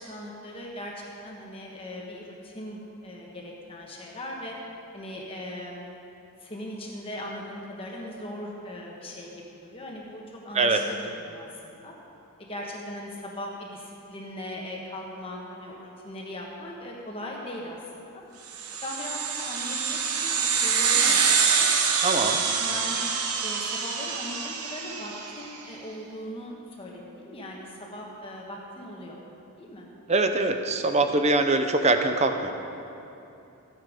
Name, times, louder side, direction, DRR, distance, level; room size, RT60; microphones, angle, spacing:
voice 1, 0.0-4.5 4.9-5.9 6.4-11.9 12.4-18.2 18.8-21.7 22.6-23.0 23.4-29.2 29.6-29.9, left 1 dB, 25° left, -2 dB, 1.3 m, -39 dB
sound 1, 18.5-25.4, right 6 dB, 85° right, 1.0 m, -25 dB
voice 2, 22.0-22.4 30.1-32.5, right 2 dB, 30° right, 7 dB, 0.7 m, -23 dB
14.0 x 9.6 x 5.1 m, 2.9 s
head